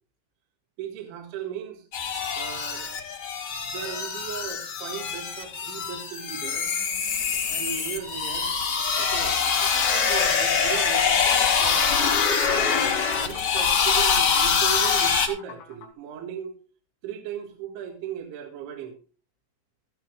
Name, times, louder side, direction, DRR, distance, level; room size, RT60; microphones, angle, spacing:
voice 1, 0.8-1.9 2.3-2.9 3.7-6.7 7.5-8.5 9.0-11.9 12.4-16.5 17.0-19.0, right 8 dB, 75° right, 4.0 m, -37 dB
angryvoices grain, 1.9-15.3, left 6 dB, 50° left, 1.9 m, -24 dB
sound 1, 7.2-10.1 10.7-10.8 11.1-14.6, left 8 dB, 65° left, 3.1 m, -41 dB
sound 2, 10.8-15.9, left 6 dB, 85° left, 4.6 m, -41 dB
16.0 x 14.0 x 2.2 m
omnidirectional pair, 5.6 m